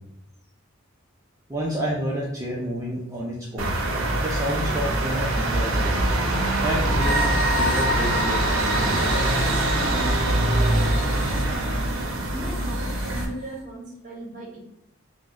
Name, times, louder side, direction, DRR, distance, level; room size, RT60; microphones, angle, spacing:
voice 1, 1.5-3.8 4.2-6.0 6.6-7.3 7.6-9.1, equal, 15° right, -4 dB, 0.4 m, -29 dB
sound 1, 3.6-13.2, right 1 dB, 85° right, 0.6 m, -23 dB
sound 2, 7.0-13.2, left 1 dB, 45° left, 0.7 m, -31 dB
voice 2, 9.7-11.8 12.3-14.6, right 1 dB, 40° right, -4 dB, 0.8 m, -38 dB
2.9 x 2.0 x 3.6 m, 0.88 s
head